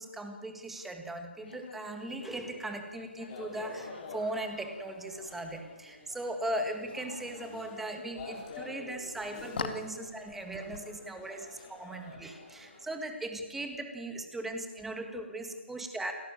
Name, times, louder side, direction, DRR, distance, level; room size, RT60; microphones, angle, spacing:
voice 1, 0.0-16.1, right 1 dB, 5° right, 5 dB, 1.7 m, -38 dB
sound 1, 1.4-12.7, left 5 dB, 50° left, 2.4 m, -47 dB
sound 2, 3.3-12.9, left 3 dB, 25° left, 5.5 m, -48 dB
29.0 x 13.0 x 8.9 m, 1.3 s
figure-of-eight pair, 155°, 7 cm